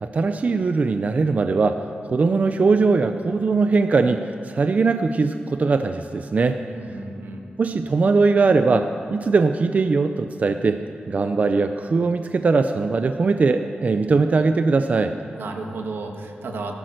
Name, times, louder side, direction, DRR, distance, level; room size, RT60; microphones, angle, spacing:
voice 1, 0.0-1.8 2.1-6.6 7.6-10.8 11.1-15.1, right 4 dB, 45° right, 8 dB, 0.5 m, -20 dB
voice 2, 6.7-7.4 15.3-16.7, right 3 dB, 85° right, 3 dB, 1.8 m, -33 dB
17.5 x 12.5 x 6.5 m, 2.6 s
wide cardioid pair, 130°, 4 cm